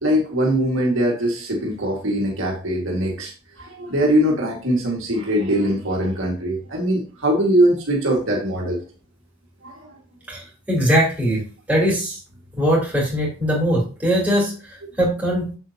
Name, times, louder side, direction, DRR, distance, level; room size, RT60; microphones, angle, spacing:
voice 1, 0.0-3.3 3.6-8.8 9.6-9.9, equal, 65° right, -1 dB, 2.0 m, -21 dB
voice 2, 10.3-11.4 11.7-12.2 12.5-14.5 15.0-15.5, equal, 5° right, -4 dB, 3.4 m, -20 dB
7.6 x 7.2 x 2.9 m, 0.35 s
head